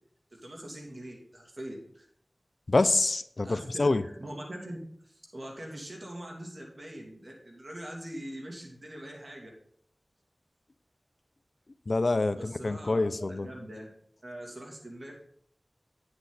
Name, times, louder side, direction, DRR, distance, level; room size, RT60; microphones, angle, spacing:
voice 1, 0.3-2.0 3.4-4.8 5.0-9.5 12.4-13.9 14.2-15.1, right 1 dB, 55° right, 0 dB, 2.8 m, -43 dB
voice 2, 2.7-4.0 11.9-13.5, left 2 dB, 65° left, 13 dB, 0.5 m, -26 dB
9.3 x 8.1 x 4.0 m, 0.67 s
wide cardioid pair, 40°, 0 cm